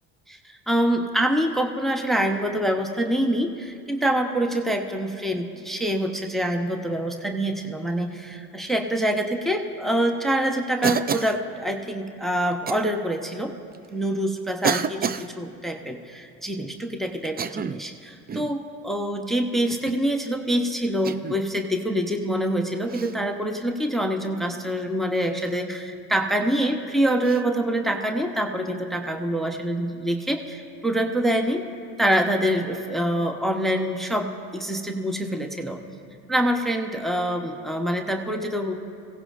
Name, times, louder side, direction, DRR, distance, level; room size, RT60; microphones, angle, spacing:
voice 1, 0.3-13.5 13.9-31.6 32.0-35.8 36.3-38.8, right 1 dB, ahead, 4 dB, 0.9 m, -25 dB
Cough, 10.8-11.4 12.7-12.9 13.7-13.8 14.6-15.3 17.2-17.9 18.3-18.6 19.7-20.0 21.0-21.4 22.9-23.2 25.4-25.5 27.2-27.4, right 6 dB, 25° right, 0.3 m, -29 dB
23.0 x 16.5 x 2.5 m, 2.5 s
supercardioid pair, 70°, 41 cm